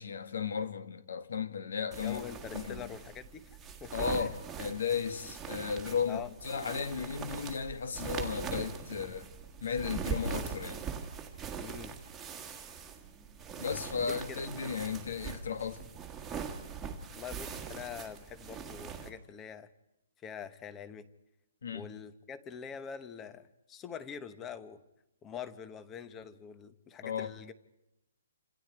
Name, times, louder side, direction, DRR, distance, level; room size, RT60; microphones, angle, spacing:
voice 1, 0.0-2.2 2.5-2.9 3.9-9.3 9.6-10.9 13.6-15.9 21.6-21.9 27.0-27.4, left 6 dB, 65° left, 2.0 m, -35 dB
sound 1, 1.9-19.1, right 6 dB, 5° right, 1.7 m, -42 dB
voice 2, 2.0-3.5 3.8-4.3 6.1-6.3 11.6-12.0 14.0-14.4 17.1-19.7 20.2-21.1 21.7-24.8 25.2-27.5, left 7 dB, 10° left, 0.9 m, -44 dB
29.0 x 26.5 x 4.6 m
hypercardioid pair, 175°, 0 cm